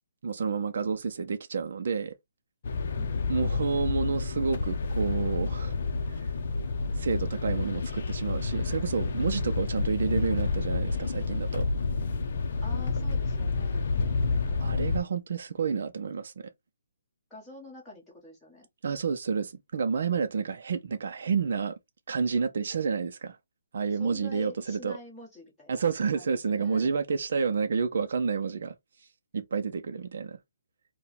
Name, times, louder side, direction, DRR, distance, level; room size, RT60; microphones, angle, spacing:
voice 1, 0.2-2.1 3.3-5.7 7.0-11.7 14.6-16.5 18.8-21.7 22.1-23.4 23.7-25.0 25.7-28.7 29.3-30.4, right 5 dB, 50° right, 0.6 m, -29 dB
sound 1, 2.6-15.0, left 4 dB, 45° left, 0.7 m, -29 dB
voice 2, 12.6-14.4 17.3-18.7 23.9-25.8 26.1-26.9 29.5-30.0, left 2 dB, 5° left, 1.6 m, -48 dB
4.6 x 2.3 x 3.3 m
hypercardioid pair, 170°, 0 cm